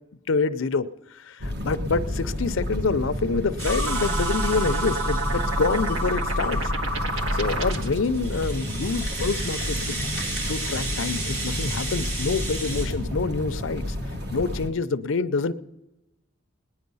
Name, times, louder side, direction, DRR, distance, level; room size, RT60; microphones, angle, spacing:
voice 1, 0.3-6.7 7.3-10.1 10.5-14.0 14.3-15.5, left 4 dB, 70° left, 13 dB, 0.6 m, -27 dB
sound 1, 1.4-14.7, left 1 dB, 50° right, 1.5 m, -31 dB
sound 2, 3.6-8.0, right 1 dB, 70° right, 1.5 m, -27 dB
Rattle (instrument), 3.6-6.6 7.1-12.9, right 2 dB, 85° right, 5.0 m, -34 dB
19.0 x 10.5 x 5.5 m, 1.0 s
head